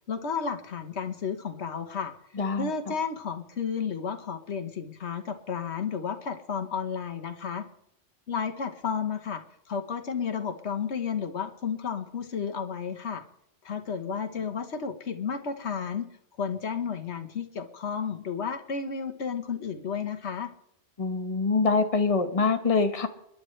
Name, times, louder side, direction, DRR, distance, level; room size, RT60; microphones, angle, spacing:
voice 1, 0.1-2.1 2.6-7.7 8.3-13.2 13.6-16.1 16.4-20.5, left 6 dB, 85° left, 7 dB, 1.5 m, -32 dB
voice 2, 2.4-2.7 21.0-23.1, left 4 dB, 35° left, 6 dB, 1.2 m, -24 dB
30.0 x 11.0 x 3.2 m, 0.76 s
omnidirectional pair, 1.1 m